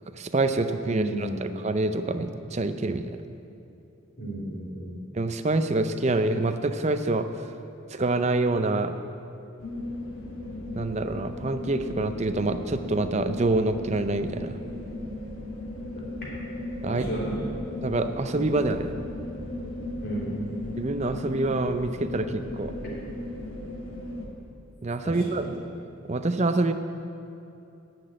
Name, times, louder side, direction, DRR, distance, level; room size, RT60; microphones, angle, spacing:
voice 1, 0.1-3.1 5.1-7.3 7.9-9.0 10.7-14.6 16.8-17.0 17.8-18.9 20.8-22.7 24.8-25.4 26.1-26.7, right 2 dB, 30° right, 9 dB, 0.5 m, -26 dB
voice 2, 0.8-1.5 4.2-5.0 16.0-16.1 16.8-17.5 20.0-20.6 25.0-25.6, right 1 dB, 45° left, -6 dB, 2.8 m, -33 dB
sound 1, 9.6-24.3, left 1 dB, 80° left, 1.9 m, -37 dB
11.5 x 6.1 x 8.8 m, 2.8 s
head